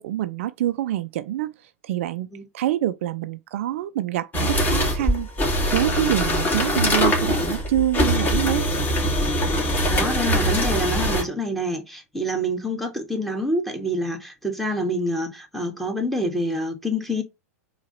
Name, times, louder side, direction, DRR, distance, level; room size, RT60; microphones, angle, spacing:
voice 1, 0.0-2.3 2.5-5.3 5.7-8.7, right 13 dB, 55° right, 0.4 m, -26 dB
sound 1, 4.3-11.2, equal, 20° left, 2.7 m, -22 dB
voice 2, 9.9-17.2, equal, ahead, 2.0 m, -27 dB
4.6 x 4.0 x 5.7 m
figure-of-eight pair, 95°, 8 cm